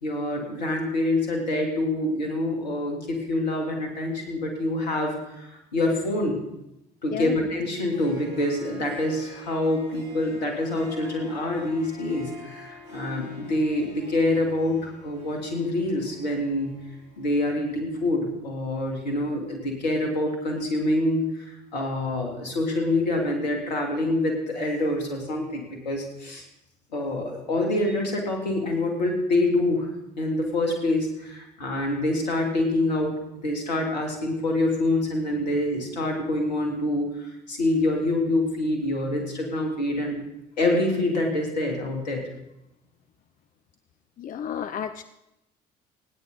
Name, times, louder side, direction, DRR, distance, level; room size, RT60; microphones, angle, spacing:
voice 1, 0.0-6.4 7.0-16.7 17.2-26.4 26.9-29.9 30.2-40.2 40.6-42.2, left 1 dB, 80° left, 2 dB, 2.7 m, -26 dB
Harp, 7.9-17.4, left 1 dB, 80° right, 6.6 m, -45 dB
voice 2, 44.2-45.0, left 9 dB, 40° left, 11 dB, 0.7 m, -32 dB
29.0 x 9.7 x 4.0 m, 0.89 s
figure-of-eight pair, 55°, 21 cm